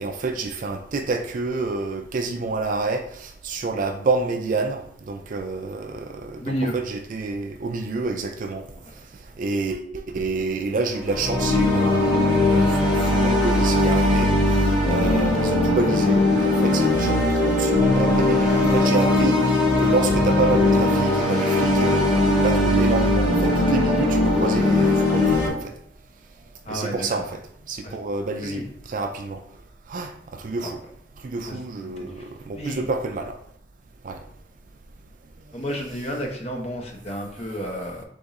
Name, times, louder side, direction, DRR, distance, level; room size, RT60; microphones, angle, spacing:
voice 1, 0.0-8.6 9.4-17.2 17.4-25.4 26.7-27.4 27.7-29.4 29.9-30.8 31.2-33.3 34.0-34.2, right 3 dB, 45° right, 5 dB, 0.4 m, -28 dB
voice 2, 6.4-6.8 8.8-8.9 26.6-27.2 27.8-28.0 28.4-28.7 30.6-30.7 31.5-31.6 31.8-32.2 32.6-32.8 35.5-38.0, equal, 35° left, 1 dB, 0.8 m, -31 dB
sound 1, 10.9-25.5, left 2 dB, 65° left, 1.8 m, -19 dB
3.6 x 3.6 x 4.0 m, 0.69 s
head